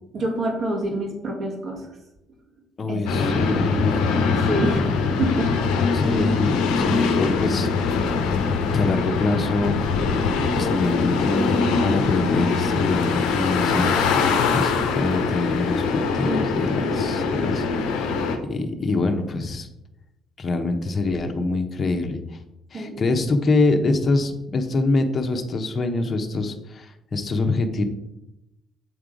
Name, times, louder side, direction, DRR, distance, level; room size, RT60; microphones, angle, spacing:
voice 1, 0.1-1.9 2.9-3.9 4.5-4.8 5.2-6.2 16.2-16.9 17.5-17.9 22.7-23.0, right 1 dB, 50° right, 1 dB, 1.9 m, -28 dB
voice 2, 2.8-4.2 5.9-7.7 8.7-9.8 10.5-13.9 14.5-17.7 18.5-19.7 20.4-22.4 22.7-27.8, left 3 dB, 40° left, 4 dB, 1.0 m, -24 dB
sound 1, 3.1-18.4, left 4 dB, 80° left, 0.8 m, -22 dB
8.0 x 3.7 x 4.9 m, 0.90 s
hypercardioid pair, 60°, 0 cm